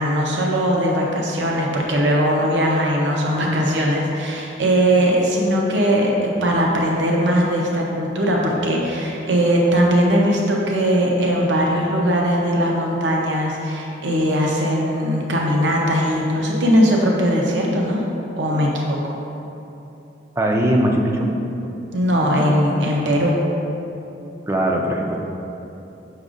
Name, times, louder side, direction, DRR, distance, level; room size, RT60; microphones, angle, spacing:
voice 1, 0.0-18.0 18.4-19.2 21.9-23.4, equal, 70° right, -2 dB, 0.7 m, -19 dB
voice 2, 20.4-21.3 24.5-25.2, right 1 dB, 15° right, 0 dB, 0.4 m, -19 dB
6.5 x 6.0 x 2.5 m, 2.9 s
head